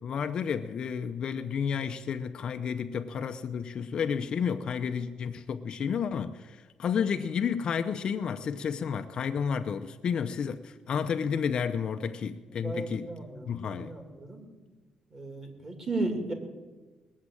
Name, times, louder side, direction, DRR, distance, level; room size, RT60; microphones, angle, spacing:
voice 1, 0.0-13.1 13.5-13.9, left 7 dB, 40° left, 0.6 m, -31 dB
voice 2, 12.6-14.5 15.1-16.3, right 2 dB, 25° right, 2.6 m, -35 dB
20.0 x 7.4 x 9.8 m
cardioid pair, 175°, 2 cm